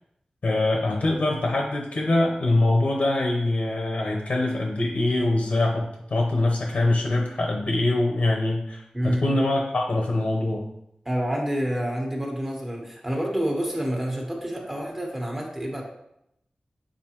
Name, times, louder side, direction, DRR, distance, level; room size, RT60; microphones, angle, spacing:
voice 1, 0.4-5.8 6.1-10.6, left 2 dB, 75° left, 0 dB, 0.9 m, -23 dB
voice 2, 8.9-9.4 11.0-15.8, equal, 15° right, -1 dB, 1.4 m, -28 dB
7.7 x 4.1 x 3.0 m, 0.79 s
wide cardioid pair, 105°, 2 cm